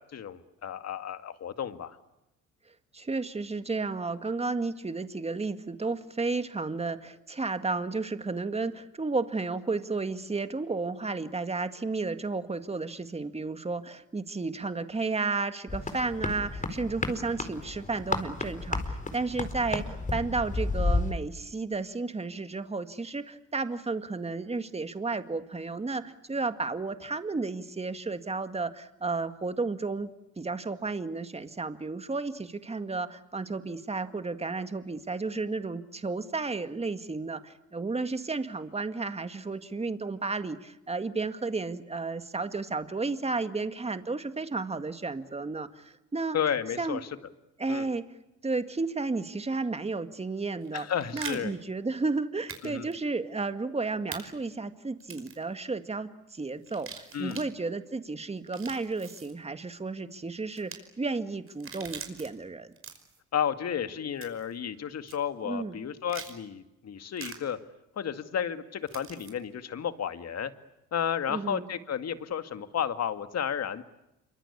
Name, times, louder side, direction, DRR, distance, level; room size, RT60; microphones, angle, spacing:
voice 1, 0.1-2.0 46.3-47.0 47.7-47.9 50.7-51.5 52.6-52.9 57.1-57.4 63.3-67.6 68.0-70.5 70.9-73.8, left 8 dB, 55° left, 9 dB, 2.2 m, -32 dB
voice 2, 2.9-30.1 30.4-46.4 46.8-47.0 47.6-48.0 48.4-50.9 51.1-62.7 65.4-65.8 71.3-71.7, right 3 dB, 20° right, 9 dB, 2.0 m, -32 dB
sound 1, 15.7-21.1, left 3 dB, 25° left, 4.3 m, -32 dB
sound 2, 50.6-51.4 52.5-52.7 52.9-53.0 54.1-54.2 55.0-55.4 56.6-57.5 58.4-59.3 60.5-60.8 61.5-62.3 62.7-63.2 64.2-64.5 65.1-65.2 66.1-66.3 67.2-67.4 68.9-69.3, right 6 dB, 45° right, 5.4 m, -42 dB
27.0 x 24.5 x 8.6 m, 0.88 s
cardioid pair, 90°, 30 cm